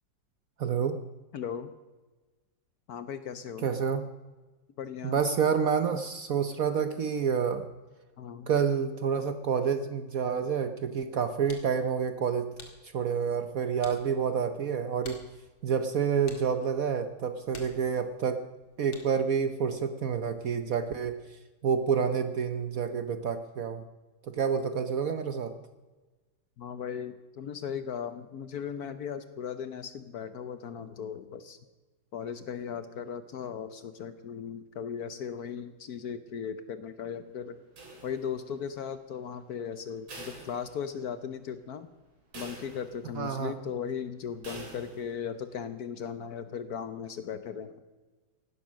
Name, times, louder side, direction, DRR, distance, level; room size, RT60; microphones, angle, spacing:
voice 1, 0.6-1.0 3.6-4.1 5.0-7.6 8.5-12.5 12.8-15.2 15.6-18.4 18.8-23.9 24.2-25.5 43.1-43.5, right 6 dB, 60° right, 9 dB, 1.0 m, -28 dB
voice 2, 1.3-1.7 2.9-3.7 4.8-5.2 8.2-8.5 26.6-31.6 32.1-37.6 38.0-41.9 42.3-47.8, left 7 dB, 60° left, 11 dB, 1.1 m, -37 dB
sound 1, 11.1-19.4, left 4 dB, 85° left, 2.8 m, -53 dB
sound 2, 37.8-38.6 40.1-41.2 41.6-41.7 42.3-43.2 44.4-45.2, right 2 dB, 90° right, 4.1 m, -46 dB
17.0 x 12.0 x 6.4 m, 1.2 s
omnidirectional pair, 2.1 m